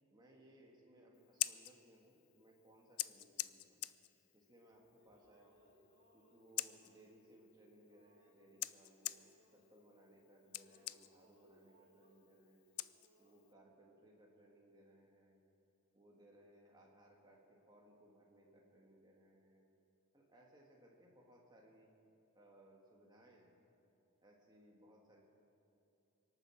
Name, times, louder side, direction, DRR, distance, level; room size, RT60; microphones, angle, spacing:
voice 1, 0.1-3.9 4.3-5.7 6.1-12.7 13.2-15.4 15.9-19.7 20.1-21.9 22.3-23.6 24.2-25.2, right 1 dB, 20° right, -2 dB, 1.7 m, -65 dB
Scissors, 1.1-13.5, left 17 dB, 75° left, 0.4 m, -48 dB
sound 1, 4.7-10.1 10.3-13.3, right 1 dB, 40° right, 3.1 m, -72 dB
24.5 x 9.0 x 6.3 m, 2.7 s
head